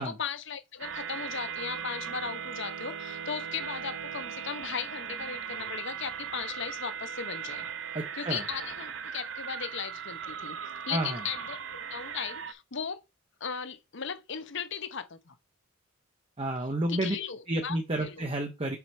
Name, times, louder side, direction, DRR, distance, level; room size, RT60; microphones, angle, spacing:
voice 1, 0.0-7.7 8.1-13.0 13.4-15.4 16.9-18.3, left 6 dB, 65° left, 0.9 m, -37 dB
sound 1, 0.8-12.5, right 7 dB, 70° right, 0.8 m, -38 dB
voice 2, 7.9-8.4 10.9-11.2 16.4-17.1 17.5-18.8, right 1 dB, 30° right, 1.0 m, -30 dB
5.9 x 5.0 x 4.3 m
head